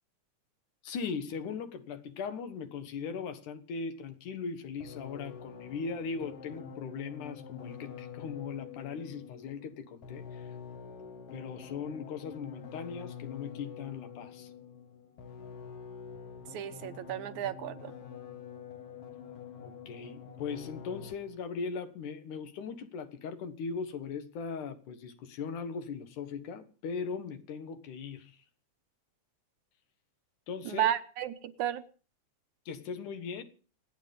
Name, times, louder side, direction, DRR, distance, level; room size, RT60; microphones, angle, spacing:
voice 1, 0.8-10.5 11.3-14.5 19.6-28.4 30.5-30.9 32.7-33.4, left 5 dB, 80° left, 2.9 m, -39 dB
sound 1, 4.8-21.4, left 7 dB, 55° left, 2.1 m, -47 dB
voice 2, 16.5-17.9 30.7-31.8, right 11 dB, 75° right, 2.3 m, -33 dB
27.0 x 9.5 x 5.3 m
omnidirectional pair, 3.5 m